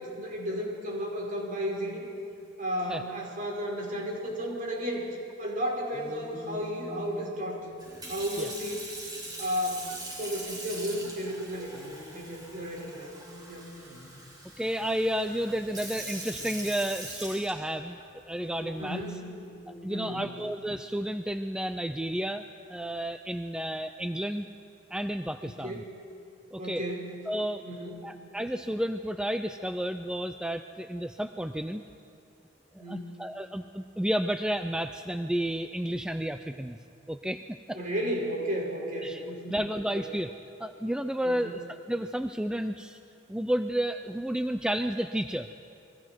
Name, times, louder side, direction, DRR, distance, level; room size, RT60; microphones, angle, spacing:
voice 1, 0.0-2.0 2.6-5.1 5.4-7.7 8.0-8.9 9.4-13.1 13.5-14.2 18.8-19.3 19.9-20.3 25.4-25.8 26.6-27.1 27.6-28.1 32.8-33.1 37.7-40.1 41.2-41.5, equal, 45° right, -2 dB, 5.5 m, -34 dB
sound 1, 5.9-9.9 11.7-17.0 18.4-20.9, equal, 30° left, 2.9 m, -49 dB
Sink (filling or washing) / Fill (with liquid), 7.8-18.0 18.7-19.0, right 1 dB, 20° right, 6.7 m, -42 dB
voice 2, 14.6-18.0 18.2-19.0 19.8-24.5 24.9-25.8 26.5-26.9 27.3-27.6 28.0-31.8 32.7-36.8 37.1-37.4 37.7-37.8 39.0-39.2 39.5-40.3 40.6-41.6 41.9-43.0 43.3-45.5, right 1 dB, 5° right, 8 dB, 0.4 m, -31 dB
30.0 x 22.5 x 4.6 m, 2.7 s
head